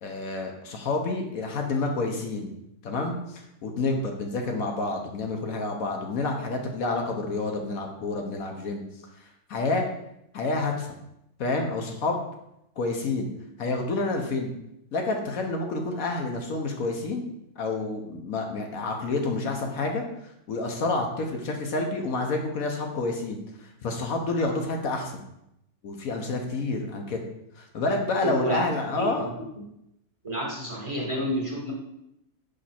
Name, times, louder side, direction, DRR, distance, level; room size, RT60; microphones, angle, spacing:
voice 1, 0.0-2.5 2.8-8.8 9.5-9.8 10.3-10.9 11.4-12.2 12.8-13.3 13.6-14.5 14.9-17.2 17.6-25.2 25.8-27.2 27.6-29.3, left 3 dB, 70° left, 2 dB, 1.2 m, -29 dB
voice 2, 28.2-28.6 28.9-29.3 30.2-31.7, equal, 20° right, -3 dB, 1.2 m, -29 dB
5.2 x 5.0 x 4.3 m, 0.82 s
omnidirectional pair, 1.6 m